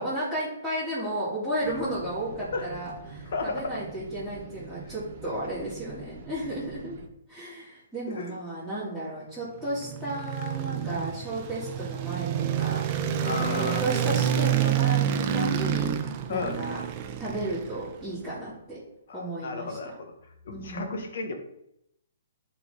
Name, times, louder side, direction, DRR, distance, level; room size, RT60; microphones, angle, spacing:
voice 1, 0.0-7.0 7.3-12.9 13.2-15.9 16.3-16.8 17.2-18.8 19.1-19.8 20.5-20.9, right 1 dB, 5° left, -13 dB, 2.9 m, -33 dB
sound 1, 1.6-7.1, right 4 dB, 50° right, 1.2 m, -44 dB
voice 2, 3.2-3.7 8.1-8.3 9.8-9.9 10.9-11.2 13.2-13.8 16.3-16.6 19.1-20.1 20.4-21.3, left 4 dB, 60° left, 4 dB, 1.5 m, -33 dB
sound 2, 9.6-18.0, right 9 dB, 30° right, 0.7 m, -28 dB
10.5 x 4.3 x 4.0 m, 0.79 s
hypercardioid pair, 155°, 0 cm